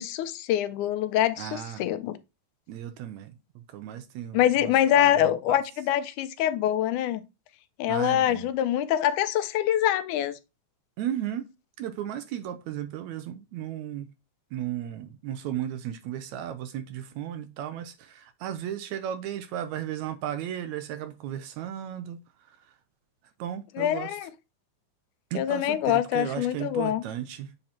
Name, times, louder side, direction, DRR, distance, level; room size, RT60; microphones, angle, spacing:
voice 1, 0.0-2.2 4.3-7.2 7.8-10.3 23.8-24.3 25.4-27.0, left 11 dB, 80° left, 2.0 m, -25 dB
voice 2, 1.4-1.8 2.7-5.1 5.5-5.6 7.9-8.5 11.0-11.5 11.8-14.1 14.5-22.2 23.4-24.2 25.3-27.5, right 10 dB, 80° right, 1.8 m, -35 dB
7.8 x 3.9 x 4.3 m
omnidirectional pair, 3.6 m